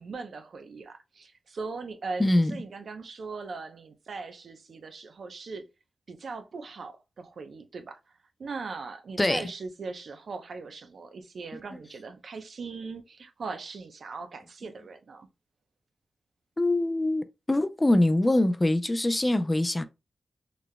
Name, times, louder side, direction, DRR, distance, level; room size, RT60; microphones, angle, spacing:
voice 1, 0.0-5.7 6.1-15.3, right 4 dB, 70° right, 0.7 m, -40 dB
voice 2, 2.2-2.5 9.2-9.5 16.6-19.8, left 1 dB, 20° left, 0.4 m, -24 dB
4.0 x 3.3 x 2.2 m
wide cardioid pair, 110°, 0 cm